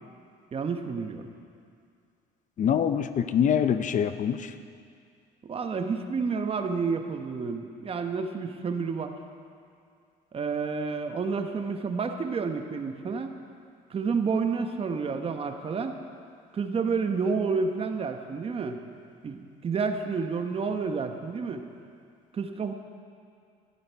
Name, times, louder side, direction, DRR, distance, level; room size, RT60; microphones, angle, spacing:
voice 1, 0.5-1.3 5.4-9.1 10.3-13.3 13.9-15.9 16.5-18.8 19.2-21.6 22.3-22.7, right 5 dB, 35° right, 6 dB, 1.0 m, -30 dB
voice 2, 2.6-4.5, left 8 dB, 50° left, 11 dB, 0.7 m, -24 dB
14.5 x 11.0 x 4.6 m, 2.3 s
cardioid pair, 110°, 17 cm